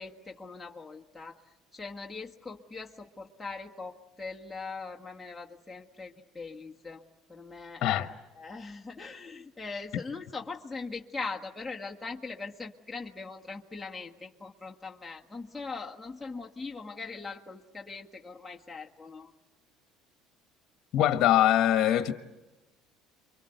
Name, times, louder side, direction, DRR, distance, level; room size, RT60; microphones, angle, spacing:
voice 1, 0.0-1.4 1.7-19.3, left 4 dB, 10° left, 1.7 m, -41 dB
voice 2, 20.9-22.1, left 12 dB, 55° left, 1.2 m, -23 dB
28.5 x 24.0 x 8.1 m
hypercardioid pair, 80°, 0 cm